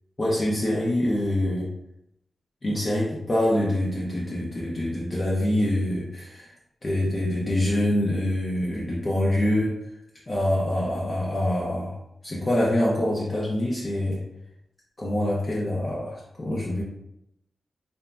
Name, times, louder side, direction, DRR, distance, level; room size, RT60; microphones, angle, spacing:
voice 1, 0.2-1.7 2.6-6.5 6.8-9.8 10.3-12.0 12.2-14.2 15.0-16.8, left 1 dB, 30° left, -5 dB, 0.5 m, -25 dB
2.9 x 2.2 x 2.4 m, 0.83 s
wide cardioid pair, 125°, 0 cm